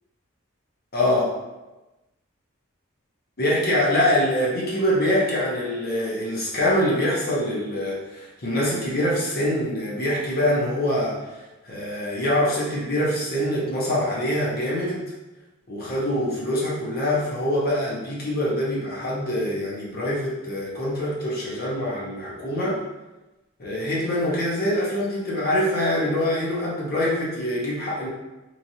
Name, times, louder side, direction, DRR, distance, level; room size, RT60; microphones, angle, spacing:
voice 1, 0.9-1.3 3.4-15.1 15.7-22.8 23.6-28.1, left 1 dB, 50° left, -5 dB, 0.8 m, -24 dB
3.1 x 2.5 x 2.7 m, 1.1 s
head